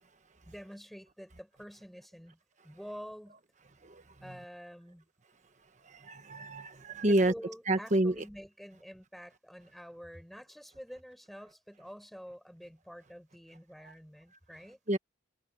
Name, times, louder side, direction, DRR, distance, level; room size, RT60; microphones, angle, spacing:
voice 1, 0.4-2.4 2.6-3.4 4.2-5.0 7.1-14.8, equal, ahead, 5.2 m, -48 dB
voice 2, 6.1-7.3 7.7-8.1 14.9-15.0, right 1 dB, 35° right, 1.3 m, -27 dB
head